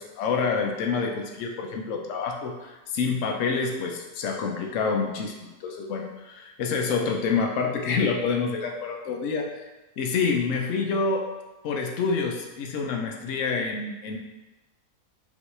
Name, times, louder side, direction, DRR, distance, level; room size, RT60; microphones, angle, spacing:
voice 1, 0.0-9.7 10.0-11.3 11.6-14.2, left 5 dB, 65° left, 2 dB, 0.8 m, -27 dB
5.1 x 3.1 x 3.2 m, 1.1 s
omnidirectional pair, 1.7 m